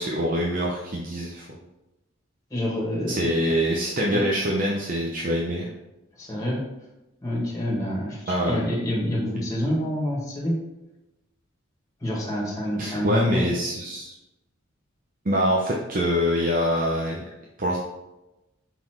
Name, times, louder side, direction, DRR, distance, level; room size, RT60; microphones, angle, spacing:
voice 1, 0.0-1.6 3.1-5.7 8.3-8.6 12.8-14.2 15.2-17.3 17.6-17.8, equal, 45° right, -2 dB, 0.8 m, -25 dB
voice 2, 2.5-3.3 4.1-4.2 6.2-6.6 7.2-10.6 12.0-13.4, left 1 dB, 15° left, -4 dB, 1.8 m, -27 dB
5.6 x 4.3 x 4.5 m, 0.98 s
head